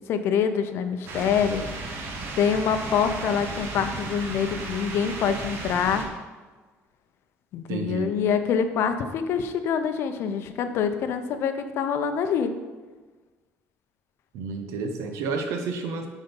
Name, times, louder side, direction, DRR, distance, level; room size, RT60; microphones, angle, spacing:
voice 1, 0.1-1.7 2.4-6.0 7.5-12.5, left 7 dB, 60° left, 9 dB, 0.6 m, -25 dB
sound 1, 1.1-6.0, right 3 dB, 55° right, 1.0 m, -35 dB
voice 2, 7.7-8.2 14.3-16.1, right 4 dB, 85° right, 5 dB, 0.9 m, -30 dB
7.9 x 4.1 x 5.3 m, 1.3 s
cardioid pair, 165°, 5 cm